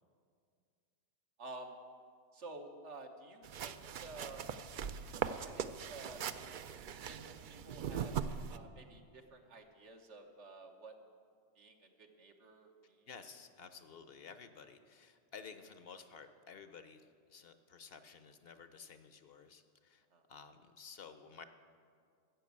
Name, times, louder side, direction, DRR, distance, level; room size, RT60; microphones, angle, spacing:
voice 1, 1.4-1.7 2.3-4.5 5.3-6.2 7.1-8.1 8.4-10.9 11.5-13.1 20.1-20.2, right 2 dB, 80° right, 3 dB, 1.5 m, -52 dB
sound 1, 3.4-8.6, right 7 dB, 60° right, 0.5 m, -40 dB
voice 2, 13.1-21.4, left 6 dB, 60° left, 10 dB, 0.9 m, -53 dB
13.5 x 7.0 x 8.4 m, 2.1 s
omnidirectional pair, 1.2 m